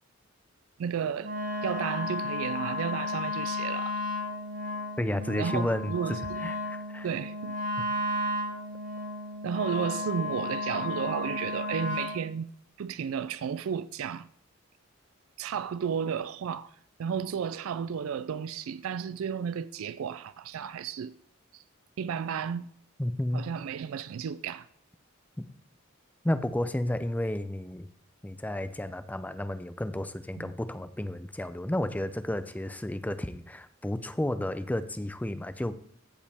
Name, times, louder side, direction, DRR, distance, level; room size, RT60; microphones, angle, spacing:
voice 1, 0.8-1.3 1.6-4.0 5.4-6.4 7.0-7.5 7.8-7.9 9.4-12.5 12.8-14.3 15.4-16.7 17.0-21.1 21.5-21.6 22.0-22.7 23.3-24.7 30.4-30.5, right 7 dB, 90° right, 0.4 m, -33 dB
Wind instrument woodwind instrument, 1.2-12.2, left 2 dB, 40° right, 1.3 m, -33 dB
voice 2, 5.0-7.1 7.8-7.9 8.2-8.3 23.0-23.4 25.4-25.5 26.2-27.9 28.2-35.7, left 1 dB, 10° left, 0.4 m, -32 dB
15.0 x 5.2 x 3.4 m
head